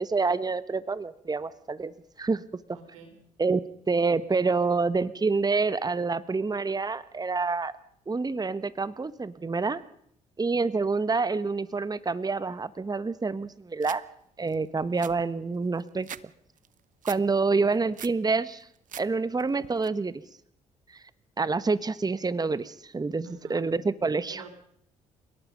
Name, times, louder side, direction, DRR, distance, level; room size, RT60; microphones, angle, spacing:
voice 1, 0.0-2.4 3.4-3.6 3.9-7.7 8.1-9.8 10.4-14.0 14.4-16.1 17.0-18.7 19.0-20.2 21.4-24.4, right 4 dB, 25° right, 16 dB, 1.3 m, -27 dB
voice 2, 2.7-3.1 23.2-23.6 24.3-24.5, right 5 dB, 85° right, 5 dB, 4.3 m, -48 dB
sound 1, 13.8-14.0 14.5-14.6 14.8-16.2 16.6-17.2 17.6-18.2 18.6-19.1 19.4-19.9, right 10 dB, 55° right, 1.0 m, -42 dB
29.5 x 18.0 x 5.3 m, 0.66 s
hypercardioid pair, 50°, 16 cm